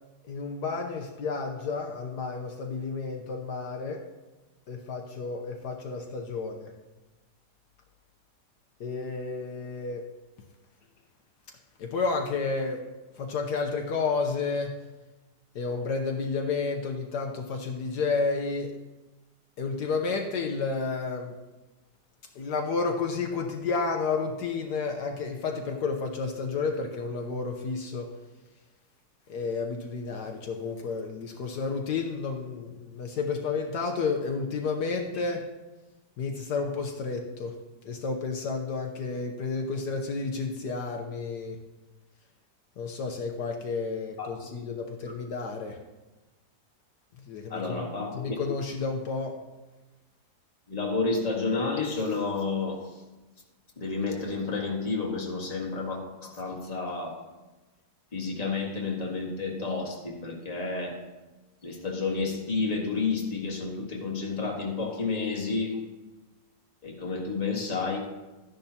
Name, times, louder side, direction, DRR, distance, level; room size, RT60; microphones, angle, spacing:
voice 1, 0.2-4.0 4.7-6.7 8.8-10.0 11.8-12.8 13.2-14.7 15.5-18.7 19.6-21.3 22.3-28.1 29.3-35.5 36.2-37.5 37.8-41.6 42.8-45.8 47.3-47.9 48.1-49.3, left 4 dB, 70° left, 3 dB, 1.4 m, -31 dB
voice 2, 44.2-44.6 47.5-48.1 50.7-52.8 53.8-57.2 58.1-61.0 61.6-65.8 66.8-68.0, left 4 dB, 20° left, 0 dB, 1.7 m, -30 dB
13.5 x 10.5 x 2.9 m, 1.1 s
omnidirectional pair, 1.9 m